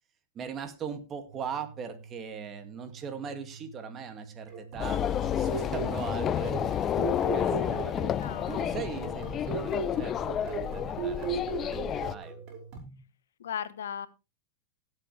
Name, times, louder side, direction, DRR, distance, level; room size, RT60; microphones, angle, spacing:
voice 1, 0.3-8.0 8.5-12.4, right 6 dB, 30° right, 9 dB, 2.3 m, -40 dB
sound 1, 1.3-12.7, right 5 dB, 85° right, 3.5 m, -49 dB
sound 2, 4.5-13.0, right 6 dB, 50° right, 5.2 m, -38 dB
sound 3, 4.8-12.1, left 10 dB, 30° left, 0.6 m, -30 dB
voice 2, 8.1-8.7 13.4-14.1, left 9 dB, 85° left, 15 dB, 1.1 m, -37 dB
17.0 x 7.8 x 3.4 m, 0.26 s
hypercardioid pair, 115°, 0 cm